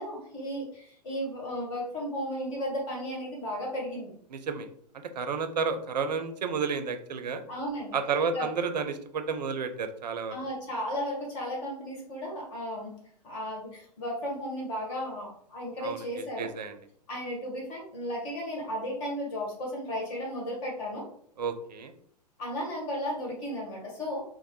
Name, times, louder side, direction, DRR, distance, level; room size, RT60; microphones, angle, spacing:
voice 1, 0.0-4.1 7.5-8.0 8.3-8.5 10.3-12.9 13.2-16.5 17.1-21.1 22.4-24.2, equal, 50° left, -2 dB, 1.4 m, -34 dB
voice 2, 4.3-4.7 5.2-7.4 7.9-10.3 15.8-16.0 16.4-16.8 21.4-21.9, right 5 dB, 75° right, 8 dB, 0.4 m, -31 dB
3.0 x 2.0 x 2.9 m, 0.64 s
figure-of-eight pair, 105°, 21 cm